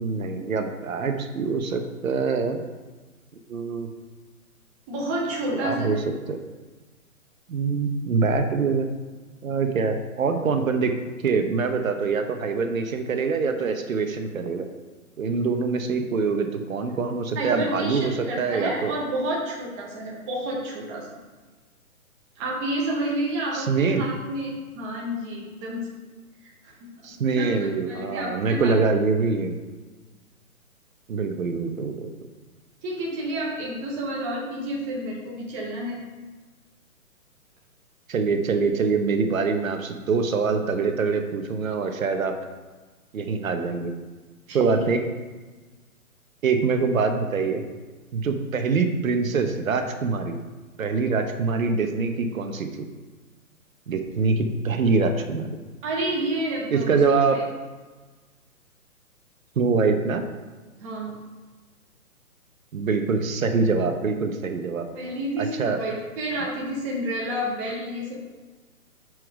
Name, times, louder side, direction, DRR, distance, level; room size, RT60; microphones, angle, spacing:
voice 1, 0.0-2.6 3.5-3.9 5.6-6.0 6.3-6.4 7.5-8.9 9.4-10.9 11.2-14.7 15.2-18.9 23.5-24.1 27.0-29.5 31.1-32.1 38.1-42.3 43.1-43.9 44.5-45.0 46.4-47.6 48.1-50.4 50.8-52.7 53.9-55.6 56.7-57.4 59.6-60.2 62.7-64.9 65.4-65.8, right 4 dB, 65° right, 6 dB, 1.0 m, -24 dB
voice 2, 4.9-6.0 17.3-21.1 22.4-25.9 26.4-26.9 27.2-28.7 32.8-36.0 44.5-44.8 55.8-57.4 60.8-61.2 64.9-68.3, right 1 dB, 10° right, -3 dB, 0.6 m, -30 dB
6.1 x 4.8 x 4.8 m, 1.3 s
hypercardioid pair, 145°, 44 cm